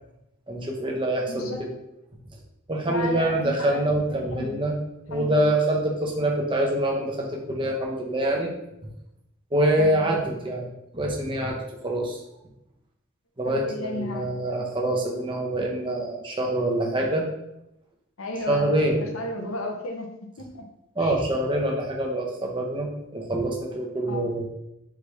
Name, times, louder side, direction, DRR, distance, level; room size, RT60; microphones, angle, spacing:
voice 1, 0.5-1.7 2.7-4.7 5.1-8.5 9.5-10.6 10.9-12.2 13.4-17.2 18.5-19.0 21.0-24.5, right 1 dB, 25° right, 0 dB, 0.7 m, -25 dB
voice 2, 1.3-1.6 2.9-3.9 4.3-4.6 5.1-5.6 9.8-10.3 13.4-14.3 18.2-20.1 20.4-20.6 21.0-21.2 24.1-24.2, left 2 dB, 75° left, 3 dB, 0.8 m, -34 dB
4.7 x 3.4 x 3.1 m, 0.85 s
head